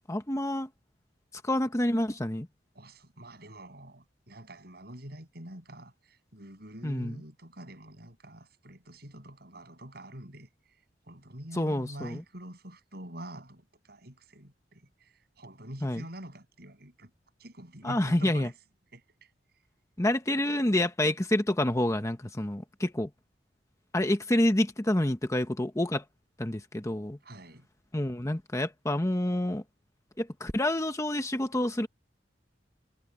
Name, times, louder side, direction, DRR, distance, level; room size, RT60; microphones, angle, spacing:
voice 1, 0.1-0.7 1.4-2.5 6.8-7.2 11.5-12.2 15.8-16.0 17.8-18.5 20.0-23.1 23.9-26.0 26.4-27.2 27.9-29.6 30.2-31.9, left 1 dB, 15° left, 1.1 m, -28 dB
voice 2, 2.7-10.5 11.0-17.1 17.4-18.5 18.9-19.3 27.2-27.7, right 1 dB, 60° right, 7.6 m, -46 dB
head